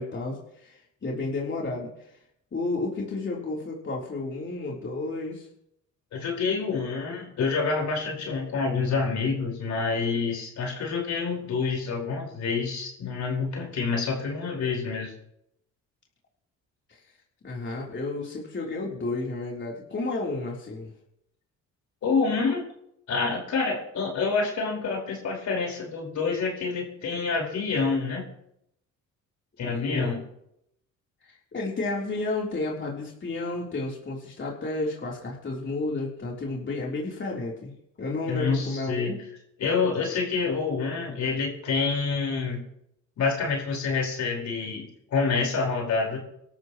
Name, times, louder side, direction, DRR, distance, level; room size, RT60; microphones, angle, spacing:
voice 1, 0.0-1.9 2.5-5.5 16.9-17.0 17.4-20.9 29.7-30.2 31.2-37.7 38.0-39.2, left 2 dB, 40° left, -3 dB, 3.7 m, -32 dB
voice 2, 6.1-15.1 22.0-22.6 23.1-28.3 29.6-30.2 38.3-39.1 39.6-42.6 43.2-46.2, left 4 dB, 70° left, 0 dB, 4.8 m, -27 dB
24.5 x 13.0 x 3.1 m, 0.77 s
cardioid pair, 90°, 30 cm